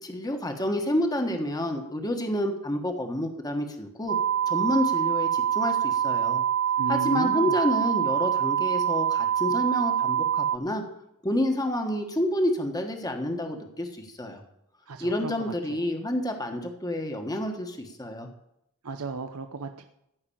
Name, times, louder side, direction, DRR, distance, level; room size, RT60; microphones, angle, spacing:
voice 1, 0.0-4.2 4.5-6.4 6.9-10.8 11.2-14.4 15.0-18.3, left 1 dB, 15° left, 4 dB, 1.3 m, -29 dB
sound 1, 4.1-10.6, right 9 dB, 50° right, 0.5 m, -25 dB
voice 2, 6.8-7.5 14.9-15.8 18.8-19.8, right 3 dB, 85° right, 7 dB, 0.7 m, -35 dB
14.5 x 5.8 x 8.6 m, 0.81 s
head